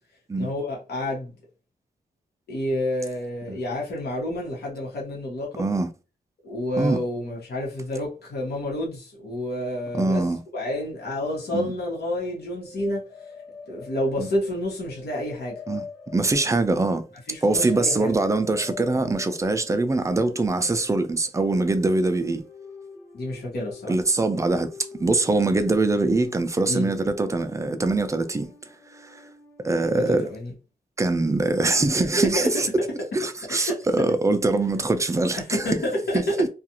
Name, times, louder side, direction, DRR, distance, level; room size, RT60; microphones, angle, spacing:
voice 1, 0.3-1.3 2.5-5.7 6.4-10.2 10.5-13.0 13.7-15.6 17.3-18.2 23.1-23.9 26.7-26.9 29.9-30.5 32.0-32.3 32.5-32.6 33.5-33.8 35.4-36.3, left 1 dB, 80° left, 1.1 m, -29 dB
voice 2, 5.6-5.9 6.8-7.0 9.9-10.4 11.5-11.7 14.2-14.3 15.7-15.8 16.1-17.0 17.4-22.4 23.9-24.7 25.0-28.5 29.0-29.2 29.6-30.2 31.0-32.7 33.1-35.8 36.1-36.5, right 2 dB, 20° right, 0.4 m, -23 dB
sound 1, 12.5-29.9, left 4 dB, 20° left, 1.0 m, -45 dB
2.4 x 2.4 x 2.8 m
wide cardioid pair, 95°, 16 cm